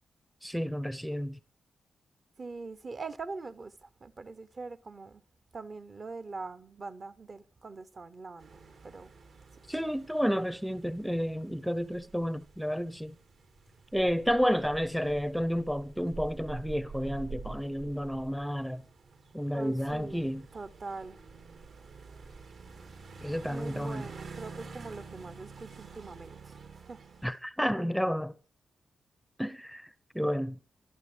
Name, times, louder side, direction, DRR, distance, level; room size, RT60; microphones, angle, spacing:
voice 1, 0.4-1.4 9.7-13.2 13.9-18.8 19.3-20.4 23.2-24.1 27.2-28.3 29.4-29.9 30.1-30.6, equal, ahead, 0.6 m, -31 dB
voice 2, 2.4-5.2 5.5-8.5 8.8-9.1 19.5-20.2 20.5-21.2 23.4-26.6 26.9-27.0, right 3 dB, 40° right, 0.8 m, -42 dB
sound 1, 8.4-27.3, right 4 dB, 70° right, 2.6 m, -48 dB
23.0 x 11.5 x 3.3 m
cardioid pair, 100°, 0 cm